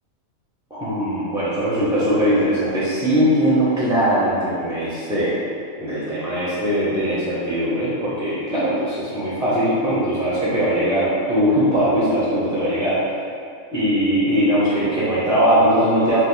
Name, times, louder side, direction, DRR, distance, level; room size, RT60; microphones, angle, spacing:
voice 1, 0.7-5.4 5.8-13.0 13.7-16.2, equal, 5° right, -9 dB, 0.3 m, -20 dB
3.0 x 2.2 x 3.6 m, 2.5 s
omnidirectional pair, 1.4 m